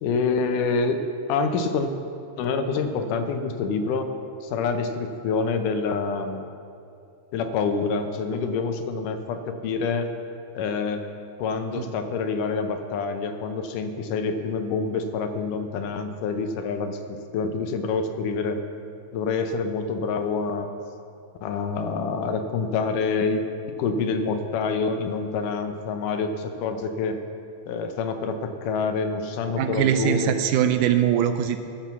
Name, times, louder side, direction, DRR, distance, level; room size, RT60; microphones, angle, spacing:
voice 1, 0.0-1.0 1.3-1.9 2.4-4.1 4.4-6.5 7.3-10.1 10.5-11.0 11.4-18.6 19.1-20.7 21.4-23.5 23.8-27.2 27.7-30.4, left 4 dB, 90° left, 7 dB, 2.4 m, -27 dB
voice 2, 29.6-31.6, right 10 dB, 85° right, 8 dB, 2.1 m, -22 dB
14.0 x 7.3 x 6.9 m, 2.5 s
omnidirectional pair, 3.6 m